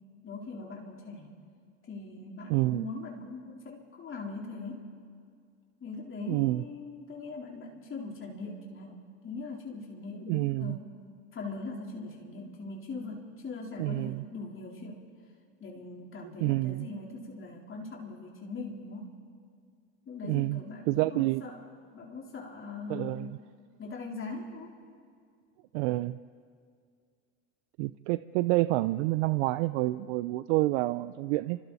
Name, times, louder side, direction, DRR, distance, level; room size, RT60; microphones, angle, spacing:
voice 1, 0.2-1.3 1.9-4.9 5.8-9.0 9.2-10.8 11.3-15.0 15.6-19.1 20.1-21.6 21.9-23.4 23.8-24.7, left 3 dB, 35° left, -1 dB, 4.0 m, -41 dB
voice 2, 2.5-2.9 6.3-6.6 10.3-10.8 13.8-14.2 16.4-16.9 20.2-20.6 20.9-21.4 22.9-23.4 25.7-26.2 27.8-31.6, right 19 dB, 75° right, 14 dB, 0.6 m, -28 dB
30.0 x 26.0 x 4.2 m, 2.2 s
supercardioid pair, 90°, 36 cm